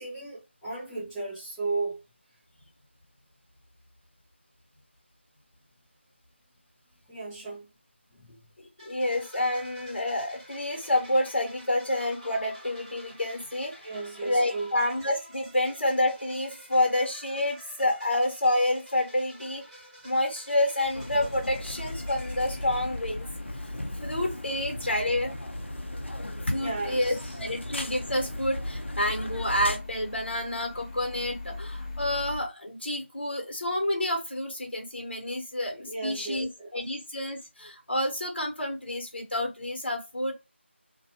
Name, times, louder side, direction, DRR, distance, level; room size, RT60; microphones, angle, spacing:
voice 1, 0.0-2.0 7.1-7.7 8.1-8.4 13.8-14.7 16.6-16.7 26.5-27.4 35.9-36.7, right 3 dB, 5° left, 0.6 m, -35 dB
voice 2, 8.6-13.7 14.2-19.6 20.0-23.3 23.9-25.4 26.5-40.3, left 1 dB, 55° left, 1.2 m, -28 dB
sound 1, 8.8-23.6, equal, 15° right, 1.2 m, -50 dB
sound 2, 20.8-32.4, left 3 dB, 30° left, 0.9 m, -42 dB
sound 3, 20.9-29.8, left 1 dB, 75° left, 0.6 m, -37 dB
2.5 x 2.3 x 2.8 m
figure-of-eight pair, 170°, 6 cm